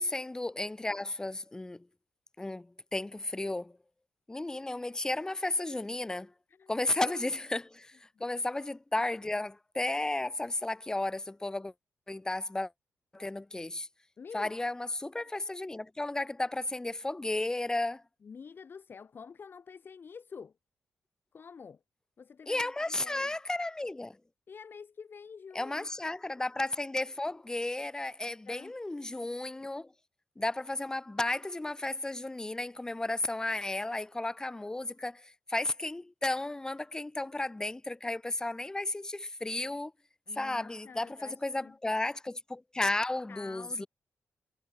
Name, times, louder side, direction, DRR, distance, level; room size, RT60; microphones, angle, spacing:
voice 1, 0.0-1.9 2.4-3.8 4.3-6.3 6.7-11.7 12.1-12.7 13.1-13.9 14.3-18.0 22.5-24.2 25.5-29.9 30.4-39.9 40.3-43.9, left 2 dB, 15° left, 1.3 m, -33 dB
voice 2, 14.2-14.5 18.2-20.5 21.3-21.8 22.2-23.3 24.5-25.9 28.3-28.7 40.3-41.8 43.3-43.9, left 6 dB, 45° left, 3.4 m, -48 dB
wide cardioid pair, 150°, 5 cm